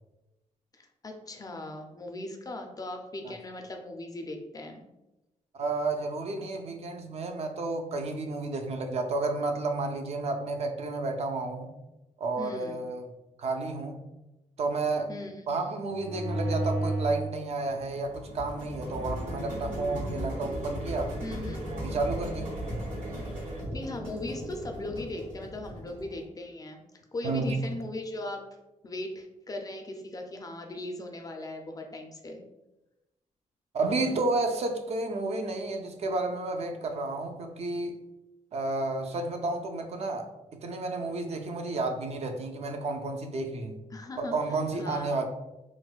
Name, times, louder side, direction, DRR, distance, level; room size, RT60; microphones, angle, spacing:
voice 1, 0.7-4.8 12.4-12.9 15.1-15.3 21.2-21.6 23.4-26.8 27.1-28.4 28.8-32.4 43.9-44.3 44.8-45.2, left 2 dB, 25° left, 3 dB, 0.4 m, -39 dB
voice 2, 5.5-11.7 12.2-13.1 13.4-14.0 14.6-15.1 15.5-21.1 21.7-22.5 27.2-27.6 33.7-38.0 38.5-40.3 40.5-43.7 44.2-45.2, right 3 dB, 50° right, 5 dB, 0.4 m, -31 dB
sound 1, 15.9-17.3 17.7-26.2, right 1 dB, 70° right, 1.4 m, -35 dB
3.9 x 2.1 x 2.4 m, 0.96 s
wide cardioid pair, 130°, 14 cm